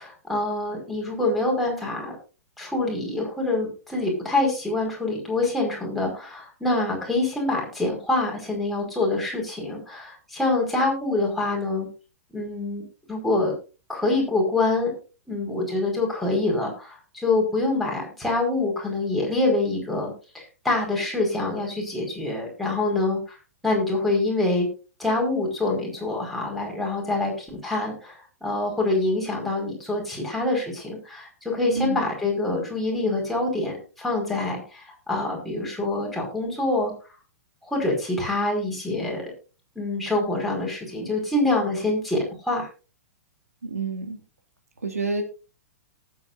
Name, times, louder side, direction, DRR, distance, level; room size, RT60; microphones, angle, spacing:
voice 1, 0.0-2.1 2.6-11.9 12.3-12.8 13.1-13.5 13.9-14.9 15.3-23.4 23.6-24.7 25.0-28.1 28.4-36.9 37.7-39.3 39.7-42.2 42.5-42.7, left 2 dB, ahead, -3 dB, 5.1 m, -25 dB
voice 2, 43.6-44.2 44.8-45.2, right 3 dB, 80° right, 5 dB, 2.4 m, -28 dB
19.0 x 8.3 x 2.6 m, 0.33 s
figure-of-eight pair, 105°, 8 cm